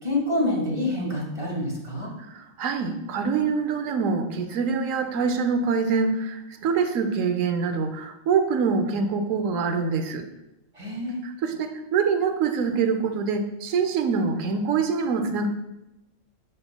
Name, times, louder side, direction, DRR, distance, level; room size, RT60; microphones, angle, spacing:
voice 1, 0.0-2.1 10.7-11.2, left 1 dB, 25° right, -3 dB, 1.6 m, -27 dB
voice 2, 2.3-10.3 11.2-15.5, right 5 dB, 85° right, 7 dB, 1.1 m, -25 dB
7.8 x 5.9 x 2.2 m, 0.91 s
omnidirectional pair, 1.3 m